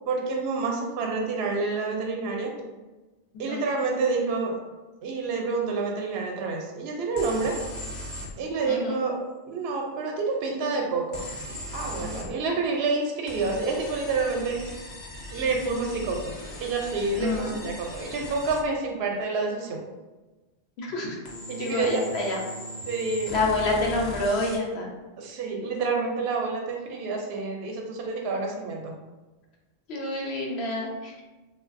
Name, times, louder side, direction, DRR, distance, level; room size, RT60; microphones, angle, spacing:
voice 1, 0.1-2.5 3.4-4.6 5.0-7.6 8.4-9.2 9.5-11.3 11.7-14.8 15.3-16.3 16.6-19.8 21.5-22.1 22.9-23.3 25.2-28.9, right 4 dB, 75° right, 1 dB, 0.8 m, -28 dB
sound 1, 7.2-8.3 11.1-12.3 13.3-18.6 21.3-24.6, left 1 dB, 50° left, 0.6 m, -38 dB
voice 2, 8.7-9.0 12.0-12.3 17.2-17.5 20.8-21.1 21.6-22.4 23.3-24.9 29.9-31.1, left 2 dB, 80° left, -1 dB, 0.9 m, -28 dB
3.0 x 2.3 x 2.5 m, 1.2 s
omnidirectional pair, 1.1 m